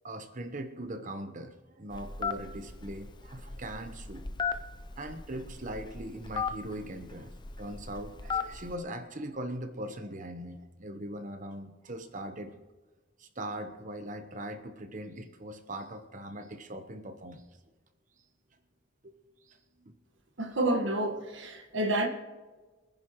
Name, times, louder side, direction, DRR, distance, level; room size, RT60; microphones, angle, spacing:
voice 1, 0.0-4.3 5.0-12.6 13.2-17.4 19.0-19.1 19.5-19.9, right 1 dB, 45° right, 1.1 m, -40 dB
Telephone, 1.9-8.8, left 5 dB, 25° left, 0.6 m, -37 dB
voice 2, 20.4-22.1, right 1 dB, 80° right, 1.6 m, -29 dB
24.5 x 10.5 x 3.1 m
head